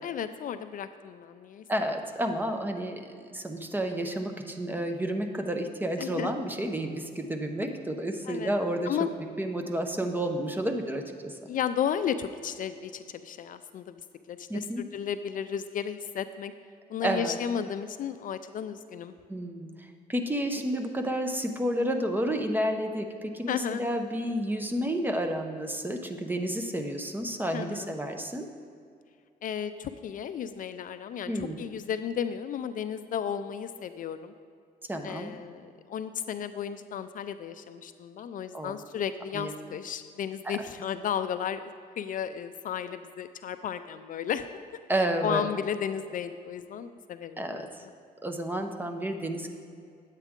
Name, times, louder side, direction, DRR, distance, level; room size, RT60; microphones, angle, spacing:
voice 1, 0.0-1.6 6.0-6.3 8.2-8.5 8.9-9.1 11.5-14.0 14.3-16.5 16.9-19.1 23.5-23.8 27.5-27.9 29.4-34.3 35.0-44.5 44.9-47.7, left 8 dB, 55° left, 11 dB, 0.4 m, -34 dB
voice 2, 1.7-9.0 9.4-11.4 14.5-14.8 17.0-17.4 19.3-28.5 31.3-31.6 34.9-35.4 38.5-38.8 39.3-39.5 40.4-40.5 44.9-45.5 47.4-47.8 48.2-49.5, right 1 dB, 10° right, 5 dB, 0.8 m, -31 dB
10.0 x 8.2 x 3.6 m, 2.3 s
cardioid pair, 100°, 17 cm